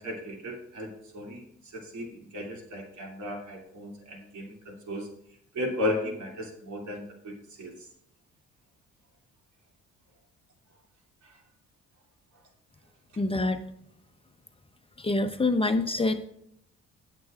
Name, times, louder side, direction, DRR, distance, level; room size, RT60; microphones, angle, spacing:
voice 1, 0.0-1.4 1.7-5.1 5.5-7.7 11.2-11.4, left 1 dB, 70° right, 1 dB, 2.8 m, -35 dB
voice 2, 13.2-13.6 15.0-16.2, left 2 dB, 20° left, 7 dB, 0.7 m, -26 dB
16.0 x 7.6 x 2.4 m, 0.73 s
cardioid pair, 90°, 30 cm